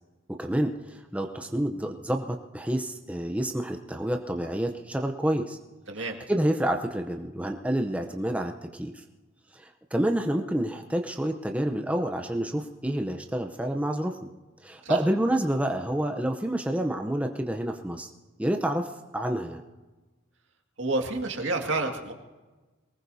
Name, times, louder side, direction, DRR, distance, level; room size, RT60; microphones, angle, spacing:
voice 1, 0.3-5.6 6.0-9.0 9.5-14.2 14.6-18.1 18.4-19.6, right 1 dB, 5° right, 4 dB, 0.7 m, -28 dB
voice 2, 5.9-6.2 14.8-15.0 20.8-22.1, right 2 dB, 70° right, 2 dB, 2.0 m, -29 dB
23.0 x 19.5 x 2.7 m, 1.2 s
head